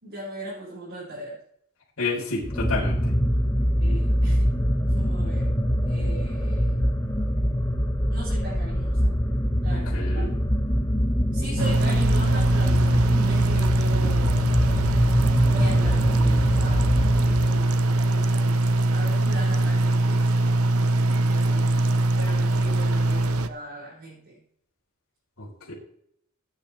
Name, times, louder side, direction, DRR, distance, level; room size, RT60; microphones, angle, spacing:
voice 1, 0.0-1.4 3.8-4.6 4.9-5.5 5.9-6.8 8.1-9.2 9.6-10.3 11.3-14.4 15.4-16.9 17.2-20.3 21.2-21.8 22.2-24.4, right 1 dB, 55° right, -7 dB, 5.3 m, -39 dB
voice 2, 2.0-3.1 9.7-10.4 25.4-25.7, left 3 dB, 75° left, -8 dB, 3.9 m, -30 dB
sound 1, 2.4-17.8, equal, 15° left, 1.0 m, -24 dB
sound 2, 11.6-23.5, right 2 dB, 90° right, 0.8 m, -22 dB
17.5 x 9.3 x 3.3 m, 0.68 s
head